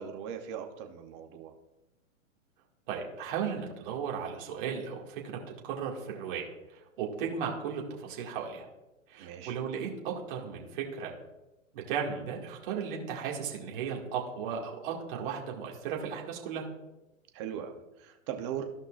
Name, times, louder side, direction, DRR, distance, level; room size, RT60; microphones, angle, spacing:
voice 1, 0.0-1.5 9.2-9.5 17.3-18.6, right 8 dB, 20° right, 5 dB, 0.7 m, -39 dB
voice 2, 2.9-5.2 5.6-8.7 9.1-11.1 11.7-16.6, right 7 dB, 40° right, -1 dB, 2.0 m, -35 dB
15.0 x 5.5 x 2.4 m, 0.99 s
hypercardioid pair, 155°, 40 cm